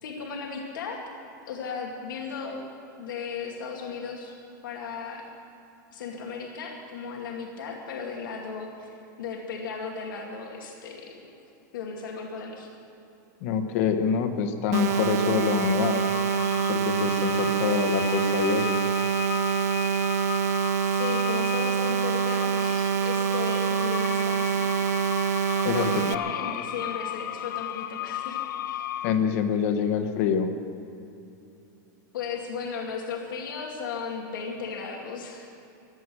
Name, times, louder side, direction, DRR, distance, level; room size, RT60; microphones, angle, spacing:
voice 1, 0.0-1.0 1.5-2.7 3.0-4.3 4.6-5.3 5.9-11.2 11.7-12.7 20.8-24.7 25.6-28.8 32.1-35.5, left 5 dB, 90° left, 0 dB, 2.4 m, -36 dB
voice 2, 13.4-16.0 16.7-18.8 25.7-26.1 29.0-30.5, left 7 dB, 45° left, 7 dB, 1.2 m, -26 dB
sound 1, 14.7-29.1, left 11 dB, 70° left, 0.6 m, -35 dB
sound 2, 14.7-26.1, right 8 dB, 55° right, 0.5 m, -26 dB
16.0 x 11.5 x 7.7 m, 2.7 s
supercardioid pair, 170°, 11 cm